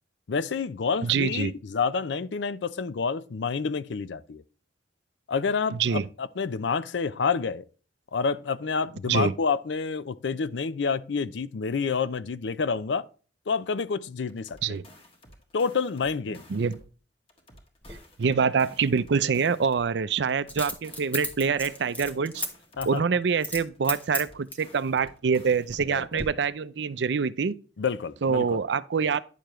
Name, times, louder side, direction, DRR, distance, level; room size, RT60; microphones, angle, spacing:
voice 1, 0.3-4.4 5.3-7.6 8.1-13.0 13.5-14.8 15.5-16.4 22.8-23.0 25.9-26.2 27.8-28.6, left 5 dB, 85° left, 0.5 m, -28 dB
voice 2, 1.0-1.5 5.7-6.1 9.1-9.3 14.6-14.9 16.5-16.8 18.2-22.4 22.9-27.6 28.2-29.2, right 5 dB, 75° right, 0.5 m, -25 dB
sound 1, 14.3-17.0 17.3-20.0 20.3-23.0 23.3-26.0, left 1 dB, 35° left, 1.7 m, -53 dB
Coin (dropping), 17.8-18.0 20.5-22.5 22.8-23.0 23.4-23.6 23.9-24.7 25.3-25.9 26.2-26.3, left 1 dB, 10° left, 1.0 m, -34 dB
10.0 x 6.8 x 3.1 m
head